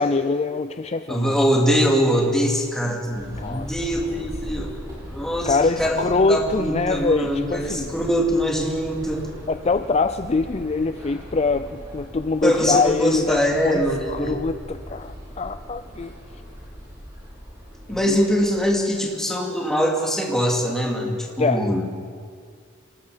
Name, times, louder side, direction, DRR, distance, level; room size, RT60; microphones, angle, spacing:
voice 1, 0.0-1.4 3.4-4.3 5.5-7.9 9.5-16.2 17.9-18.2 21.4-21.7, left 3 dB, 30° left, 10 dB, 0.4 m, -24 dB
voice 2, 1.1-6.0 6.3-9.3 12.4-14.4 17.9-21.9, equal, 5° left, -1 dB, 2.8 m, -23 dB
sound 1, 3.1-18.6, equal, 20° right, 7.8 m, -39 dB
27.0 x 19.0 x 5.1 m, 2.1 s
head